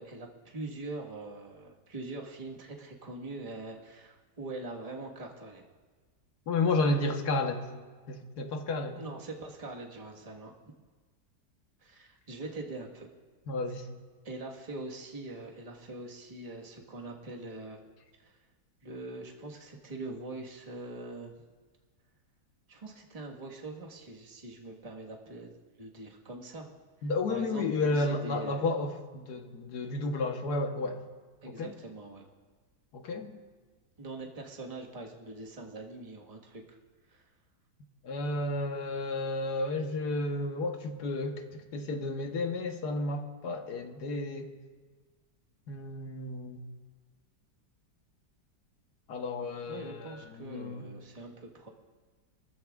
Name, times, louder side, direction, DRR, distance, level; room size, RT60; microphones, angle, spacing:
voice 1, 0.0-5.6 9.0-10.5 11.8-13.1 14.2-17.8 18.2-18.3 18.8-21.3 22.7-25.5 25.8-26.7 27.3-28.7 31.4-32.2 34.0-36.8 37.1-37.3 49.7-51.7, right 2 dB, 25° right, 0 dB, 1.4 m, -43 dB
voice 2, 6.5-7.7 8.1-9.0 13.5-13.9 27.0-31.0 31.5-31.7 32.9-33.3 38.0-44.5 45.7-46.6 49.1-50.8, left 2 dB, 70° left, 5 dB, 1.6 m, -32 dB
24.0 x 14.0 x 2.4 m, 1.4 s
omnidirectional pair, 1.8 m